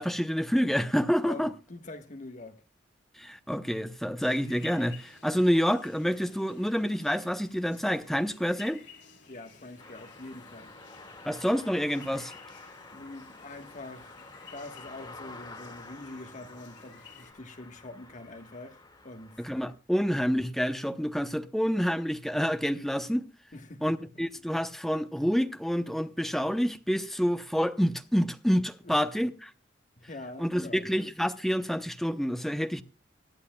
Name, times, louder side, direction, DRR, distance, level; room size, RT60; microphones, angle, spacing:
voice 1, 0.0-1.5 3.2-8.8 11.2-12.3 19.4-23.3 23.8-29.5 30.4-32.8, equal, ahead, 0.8 m, -28 dB
voice 2, 1.3-2.6 9.3-10.7 12.9-14.2 14.5-19.4 23.5-24.1 28.8-28.9 30.0-30.9, left 2 dB, 45° left, 1.4 m, -44 dB
sound 1, 4.2-17.3, left 5 dB, 70° left, 3.7 m, -54 dB
sound 2, 9.8-19.7, left 3 dB, 25° left, 2.1 m, -49 dB
24.0 x 9.7 x 2.3 m
head